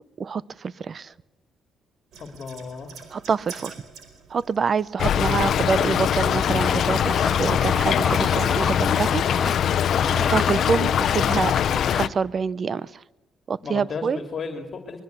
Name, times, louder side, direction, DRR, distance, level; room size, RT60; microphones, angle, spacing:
voice 1, 0.2-1.1 3.1-3.7 4.3-9.8 10.3-13.0 13.5-14.2, right 5 dB, 45° right, 20 dB, 0.8 m, -26 dB
sound 1, 2.1-7.5, right 6 dB, 75° right, 4.6 m, -47 dB
voice 2, 2.2-2.9 9.9-10.1 13.6-15.0, left 5 dB, 45° left, 5 dB, 2.8 m, -34 dB
Stream / Trickle dribble, 5.0-12.1, left 9 dB, 65° left, 0.9 m, -22 dB
sound 2, 6.6-11.8, left 2 dB, 10° left, 1.5 m, -32 dB
24.5 x 21.5 x 8.2 m, 0.96 s
cardioid pair, 90°, 0 cm